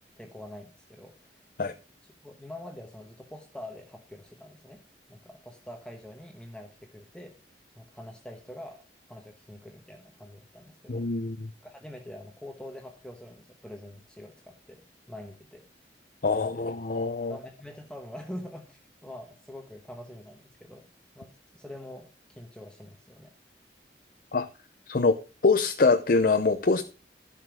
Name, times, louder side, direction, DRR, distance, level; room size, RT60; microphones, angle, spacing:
voice 1, 0.2-1.4 1.7-1.8 2.2-4.8 5.1-7.3 7.8-11.3 11.6-14.8 15.1-15.7 16.3-16.7 17.3-20.9 21.1-23.3, left 1 dB, 5° left, 1.1 m, -45 dB
voice 2, 10.9-11.5 16.2-17.4 24.3-24.5 24.9-25.2 25.4-26.8, left 3 dB, 50° left, 0.6 m, -24 dB
11.5 x 6.7 x 5.0 m
head